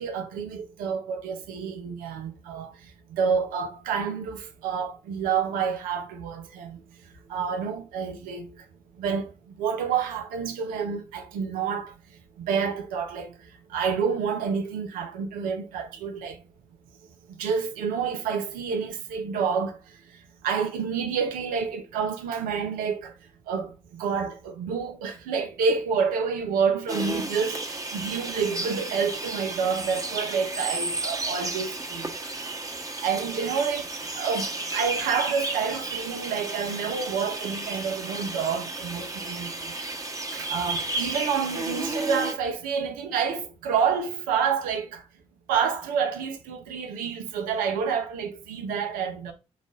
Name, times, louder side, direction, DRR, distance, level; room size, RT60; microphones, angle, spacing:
voice 1, 0.0-2.7 3.1-6.8 7.3-8.5 9.0-11.9 12.4-13.3 13.7-16.4 17.4-19.8 20.4-23.1 23.5-32.1 33.0-33.9 34.1-39.7 40.3-45.0 45.5-49.3, right 6 dB, 80° right, 0.7 m, -28 dB
sound 1, 26.9-42.3, right 2 dB, 25° right, 1.1 m, -33 dB
4.0 x 2.5 x 3.8 m
hypercardioid pair, 40°, 14 cm